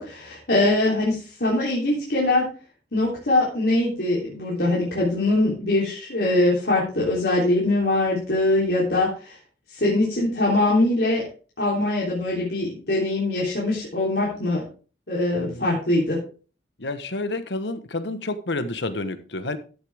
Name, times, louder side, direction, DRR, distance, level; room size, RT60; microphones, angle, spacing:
voice 1, 0.0-2.5 2.9-9.4 9.7-11.2 11.6-14.6 15.1-16.2, left 2 dB, 65° left, -5 dB, 3.4 m, -22 dB
voice 2, 15.3-15.7 16.8-19.6, left 2 dB, 80° left, 11 dB, 1.2 m, -29 dB
13.5 x 8.2 x 3.5 m, 0.36 s
head